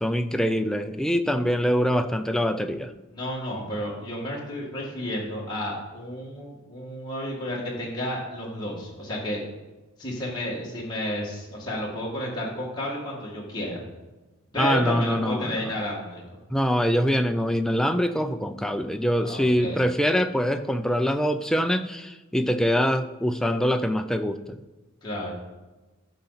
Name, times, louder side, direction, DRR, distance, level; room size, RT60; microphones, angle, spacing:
voice 1, 0.0-2.9 14.6-15.7 16.5-24.6, equal, 5° left, 7 dB, 0.3 m, -24 dB
voice 2, 3.1-9.4 10.0-13.8 14.5-16.2 19.2-19.8 25.0-25.3, left 1 dB, 20° left, -5 dB, 1.8 m, -31 dB
13.0 x 5.4 x 4.0 m, 1.2 s
head